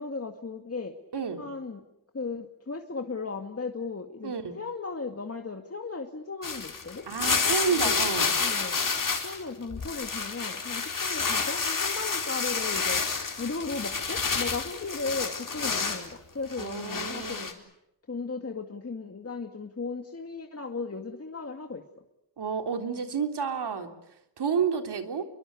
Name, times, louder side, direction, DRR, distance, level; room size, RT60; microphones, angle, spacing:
voice 1, 0.0-0.9 1.4-1.8 2.1-7.1 7.7-8.9 9.2-13.0 13.4-17.5 18.1-21.8, left 4 dB, 35° left, 4 dB, 2.2 m, -36 dB
voice 2, 1.1-1.4 4.2-4.6 7.1-8.3 16.6-17.5 22.4-23.9 24.4-25.2, right 6 dB, 80° right, 6 dB, 3.5 m, -30 dB
sound 1, 6.4-9.4 9.7-16.1 16.5-17.5, left 5 dB, 55° left, 4.2 m, -29 dB
28.5 x 23.0 x 8.5 m, 0.83 s
wide cardioid pair, 90°, 39 cm